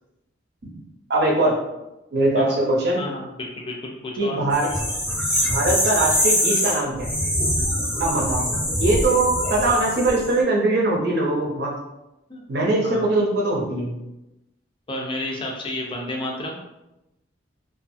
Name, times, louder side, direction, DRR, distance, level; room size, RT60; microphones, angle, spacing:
voice 1, 1.1-1.6 2.1-3.0 4.2-4.7 5.5-7.1 8.0-8.5 8.8-11.7 12.5-14.0, right 2 dB, 55° right, -2 dB, 0.7 m, -21 dB
voice 2, 3.0-4.4 12.3-12.5 12.8-13.2 14.9-16.6, left 1 dB, 25° left, 0 dB, 0.4 m, -31 dB
sound 1, 4.5-10.3, equal, 5° right, 0.8 m, -23 dB
2.6 x 2.3 x 2.5 m, 0.94 s
head